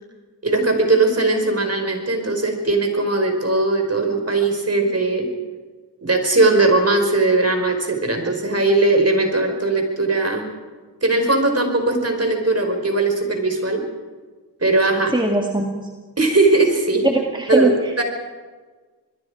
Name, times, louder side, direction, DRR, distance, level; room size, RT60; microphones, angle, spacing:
voice 1, 0.4-5.3 6.0-10.4 11.0-13.8 14.6-15.1 16.2-17.1 17.5-18.0, right 2 dB, 35° right, 4 dB, 5.1 m, -19 dB
voice 2, 15.1-15.9 17.0-18.0, right 1 dB, 10° right, 1 dB, 2.3 m, -21 dB
26.5 x 21.0 x 4.9 m, 1.4 s
cardioid pair, 50°, 41 cm